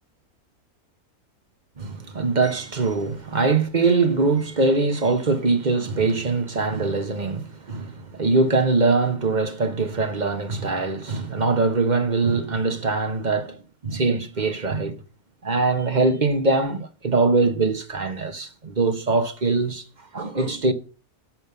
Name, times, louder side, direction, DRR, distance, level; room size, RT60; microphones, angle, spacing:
voice 1, 1.8-15.0 15.4-19.8 20.1-20.7, right 3 dB, 35° right, 1.1 m, -22 dB
10.5 x 5.4 x 6.8 m
omnidirectional pair, 1.6 m